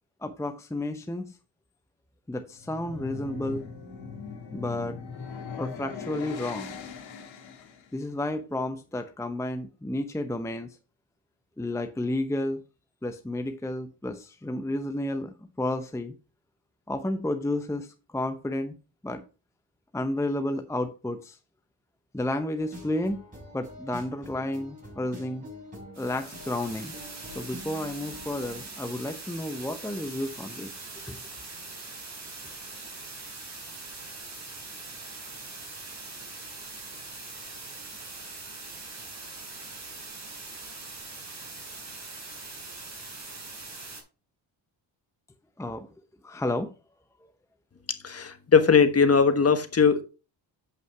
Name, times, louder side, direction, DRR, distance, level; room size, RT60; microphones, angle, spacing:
voice 1, 0.2-1.3 2.3-3.6 4.5-5.0 5.6-6.8 7.9-10.7 11.6-12.6 13.0-16.1 16.9-18.7 19.0-19.2 19.9-21.4 22.1-23.2 23.5-25.5 26.0-26.9 27.3-30.7 31.1-31.2 45.6-45.9 46.2-46.7, left 1 dB, 5° left, 0.8 m, -31 dB
sound 1, 2.5-7.9, left 5 dB, 75° left, 2.1 m, -39 dB
sound 2, 22.6-28.6, equal, 15° right, 5.3 m, -46 dB
sound 3, 25.9-44.0, right 3 dB, 35° right, 3.8 m, -42 dB
voice 2, 48.0-50.0, left 5 dB, 30° left, 1.3 m, -20 dB
7.7 x 5.8 x 4.7 m
cardioid pair, 80°, 46 cm